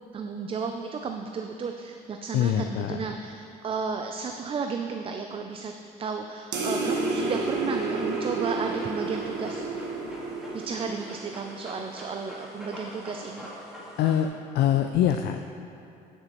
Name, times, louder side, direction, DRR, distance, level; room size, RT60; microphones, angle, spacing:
voice 1, 0.1-5.7 6.0-9.9 10.5-13.5, right 5 dB, 35° right, 5 dB, 0.4 m, -33 dB
voice 2, 2.3-3.0 14.0-14.3 14.5-15.4, left 10 dB, 70° left, 6 dB, 0.4 m, -23 dB
sound 1, 6.5-11.4, right 3 dB, 85° right, 1.2 m, -30 dB
Dog, 7.5-14.3, equal, 5° right, 1.8 m, -45 dB
11.0 x 6.7 x 3.0 m, 2.6 s
cardioid pair, 110°, 17 cm